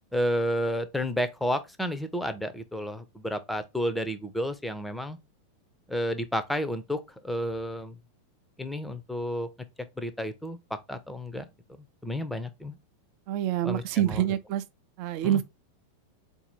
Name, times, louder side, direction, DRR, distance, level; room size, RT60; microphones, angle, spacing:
voice 1, 0.1-5.2 5.9-8.0 8.6-9.5 10.0-10.6 10.9-11.5 12.0-12.8 13.6-14.2 15.2-15.4, equal, 5° left, 0.6 m, -31 dB
voice 2, 13.3-14.6 15.0-15.4, right 11 dB, 45° right, 0.4 m, -26 dB
4.1 x 2.7 x 4.3 m
figure-of-eight pair, 90°, 0 cm